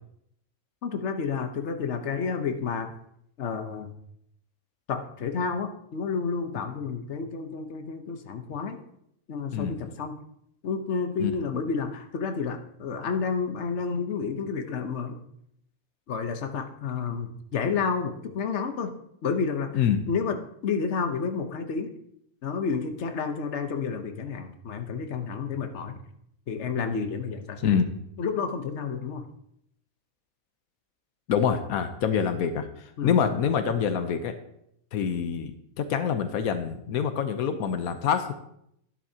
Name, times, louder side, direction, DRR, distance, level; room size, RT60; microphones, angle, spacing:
voice 1, 0.8-2.9 3.4-3.9 4.9-8.8 9.3-10.2 10.6-15.2 16.1-18.9 19.2-20.4 20.6-21.9 22.4-26.0 26.5-27.8 28.2-29.2 33.0-33.2, left 5 dB, 55° left, 6 dB, 1.2 m, -30 dB
voice 2, 19.7-20.0 27.6-27.9 31.3-34.3 34.9-35.5 35.8-38.3, left 7 dB, 90° left, 9 dB, 1.2 m, -26 dB
11.5 x 10.5 x 2.8 m, 0.74 s
omnidirectional pair, 1.5 m